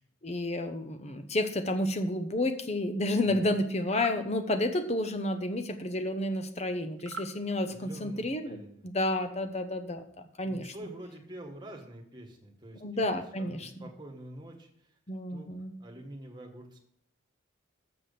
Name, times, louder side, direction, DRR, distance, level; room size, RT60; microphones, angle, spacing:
voice 1, 0.2-10.7 12.8-13.7 15.1-15.7, left 1 dB, 30° left, 8 dB, 0.8 m, -31 dB
voice 2, 3.2-3.5 7.5-8.8 10.4-13.0 13.4-15.0 15.3-15.5 15.8-16.8, right 1 dB, 20° right, 2 dB, 1.5 m, -47 dB
sound 1, 3.8-4.2 7.0-7.3, right 4 dB, 60° right, 0.7 m, -41 dB
7.6 x 6.1 x 6.8 m, 0.70 s
head